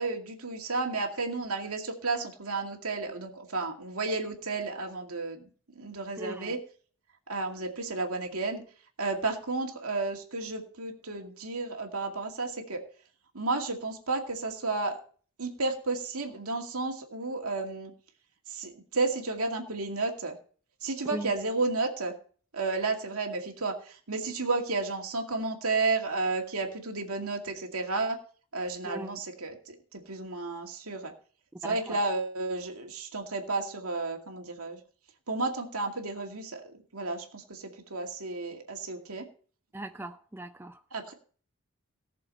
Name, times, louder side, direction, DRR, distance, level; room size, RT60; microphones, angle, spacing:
voice 1, 0.0-5.5 5.8-6.6 7.3-8.6 9.0-12.8 13.3-15.0 15.4-17.9 18.5-20.4 20.8-22.1 22.5-28.2 28.5-31.1 31.6-34.8 35.3-39.3 40.9-41.1, right 3 dB, 85° right, 2.3 m, -32 dB
voice 2, 6.2-6.6 21.1-21.3 28.8-29.2 31.6-32.0 39.7-40.8, right 1 dB, 10° right, 0.5 m, -39 dB
18.5 x 6.8 x 4.1 m
head